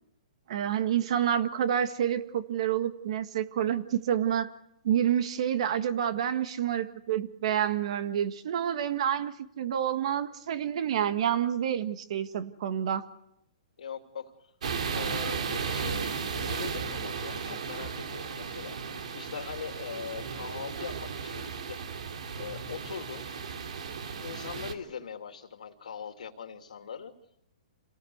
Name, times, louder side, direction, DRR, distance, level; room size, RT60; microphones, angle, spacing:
voice 1, 0.5-4.5 4.8-13.0, right 9 dB, 55° right, 10 dB, 1.8 m, -28 dB
voice 2, 13.8-14.3 14.9-18.8 19.1-21.9 22.4-23.4 24.2-27.1, left 7 dB, 85° left, 5 dB, 3.1 m, -41 dB
sound 1, 14.6-24.7, right 6 dB, 70° right, 3.0 m, -35 dB
27.5 x 18.5 x 8.1 m, 0.80 s
hypercardioid pair, 160°, 4 cm